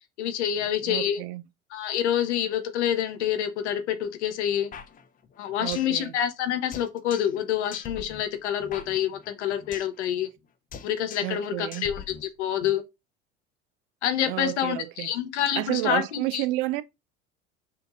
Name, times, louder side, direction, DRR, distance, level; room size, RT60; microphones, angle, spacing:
voice 1, 0.2-1.2 1.7-4.7 5.4-10.3 10.8-12.8 14.0-16.4, left 10 dB, 70° left, 0.8 m, -27 dB
voice 2, 0.9-1.4 5.6-6.1 11.2-11.9 14.3-15.1 15.6-16.8, right 17 dB, 50° right, 0.4 m, -30 dB
sound 1, 4.7-6.0 6.3-6.4 6.7-7.4 7.7-10.0 10.2-10.5 10.7-11.4 11.7-12.7, left 7 dB, 25° left, 0.5 m, -43 dB
5.6 x 2.7 x 2.5 m
figure-of-eight pair, 70°, 35 cm